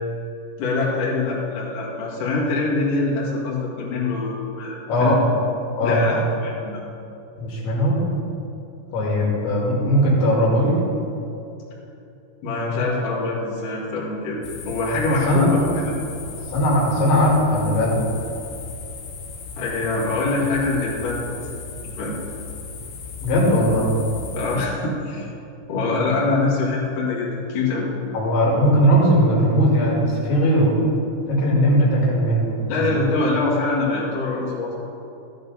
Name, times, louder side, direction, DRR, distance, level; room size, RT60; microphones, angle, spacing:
voice 1, 0.6-5.1 5.8-6.8 12.4-14.4 14.7-15.9 19.6-21.5 21.8-22.2 24.3-25.3 25.7-27.9 32.7-34.8, left 3 dB, 55° left, -6 dB, 3.1 m, -24 dB
voice 2, 5.8-6.2 7.4-8.1 8.9-10.8 15.3-15.5 16.5-18.0 23.2-23.9 28.1-31.0 31.3-32.9, equal, 70° left, -4 dB, 4.5 m, -19 dB
sound 1, 14.4-24.7, left 4 dB, 85° left, 1.8 m, -36 dB
14.0 x 11.0 x 4.1 m, 2.8 s
omnidirectional pair, 5.5 m